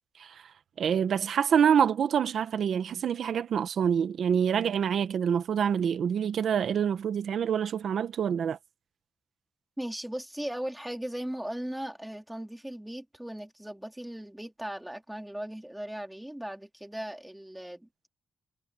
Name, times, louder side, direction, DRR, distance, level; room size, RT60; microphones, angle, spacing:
voice 1, 0.2-0.5 0.8-8.6, right 8 dB, 70° right, 1.2 m, -26 dB
voice 2, 9.8-18.1, right 1 dB, 5° right, 3.6 m, -38 dB
cardioid pair, 115°, 0 cm